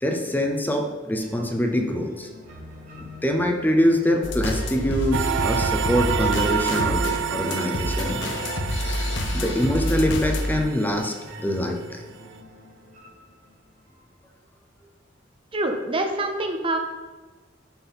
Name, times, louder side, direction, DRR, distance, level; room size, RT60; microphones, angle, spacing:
voice 1, 0.0-2.3 3.0-8.4 8.8-9.0 9.3-11.1 11.4-12.0, equal, 10° left, 3 dB, 0.7 m, -24 dB
sound 1, 1.2-14.2, left 2 dB, 45° right, 2.6 m, -42 dB
sound 2, 4.2-10.6, left 1 dB, 75° left, 0.7 m, -28 dB
sound 3, 5.1-11.3, right 8 dB, 70° right, 0.5 m, -29 dB
voice 2, 15.5-16.8, right 2 dB, 30° right, 4 dB, 0.7 m, -25 dB
9.9 x 3.8 x 5.8 m, 1.3 s
head